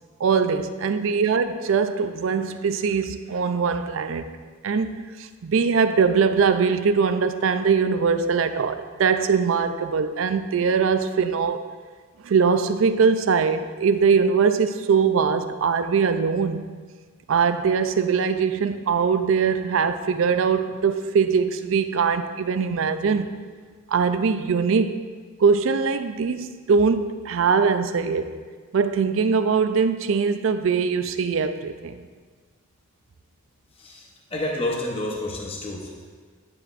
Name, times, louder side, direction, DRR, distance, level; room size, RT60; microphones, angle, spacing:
voice 1, 0.2-4.3 4.6-11.6 12.2-16.7 17.3-23.3 23.9-25.1 25.4-28.4 28.7-32.0, right 5 dB, 70° right, 0.4 m, -22 dB
voice 2, 34.3-36.1, left 1 dB, 25° left, 0.9 m, -29 dB
9.7 x 7.4 x 2.5 m
head